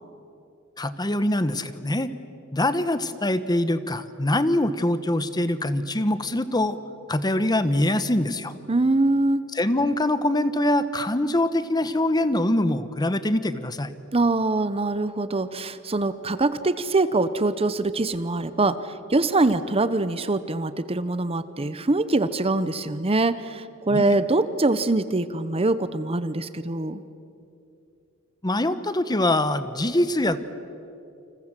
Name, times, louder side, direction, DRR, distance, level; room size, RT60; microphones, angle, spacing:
voice 1, 0.8-2.1 2.5-6.8 7.1-8.5 9.5-13.9 23.9-24.1 28.4-30.4, left 1 dB, 20° left, 12 dB, 1.0 m, -24 dB
voice 2, 8.7-9.4 14.1-27.0, right 2 dB, 30° right, 13 dB, 0.8 m, -23 dB
29.0 x 27.0 x 7.6 m, 2.7 s
head